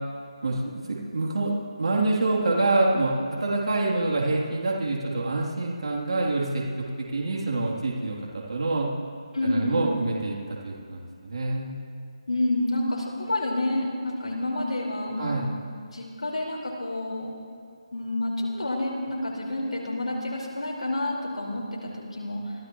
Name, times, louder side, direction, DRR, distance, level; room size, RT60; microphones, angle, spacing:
voice 1, 0.4-8.2 8.5-8.9 9.4-11.8 15.2-15.5, right 2 dB, 60° right, -3 dB, 3.3 m, -26 dB
voice 2, 9.3-9.8 12.3-15.4 15.9-17.3 17.9-22.5, left 1 dB, 85° left, -2 dB, 4.8 m, -29 dB
27.0 x 15.0 x 3.2 m, 2.3 s
figure-of-eight pair, 165°, 3 cm